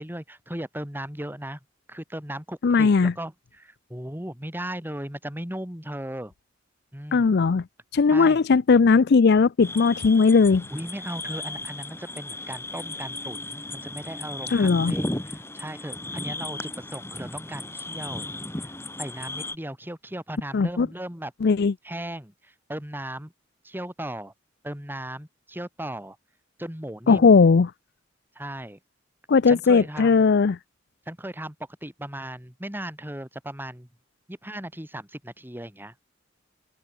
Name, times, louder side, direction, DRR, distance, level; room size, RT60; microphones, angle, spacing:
voice 1, 0.0-1.6 1.9-6.3 6.9-7.3 8.1-8.4 10.7-18.2 19.0-21.3 21.8-22.3 22.7-23.3 23.6-24.3 24.6-26.2 26.6-27.3 28.3-28.8 29.5-30.2 31.1-31.5 31.8-33.9 34.3-35.9, right 1 dB, 10° right, 5.0 m, -36 dB
voice 2, 2.6-3.1 7.1-7.6 7.9-10.6 14.5-14.9 20.5-20.9 21.4-21.7 27.1-27.7 29.3-30.6, left 4 dB, 55° left, 0.5 m, -18 dB
sound 1, 9.6-19.6, left 2 dB, 15° left, 2.0 m, -35 dB
head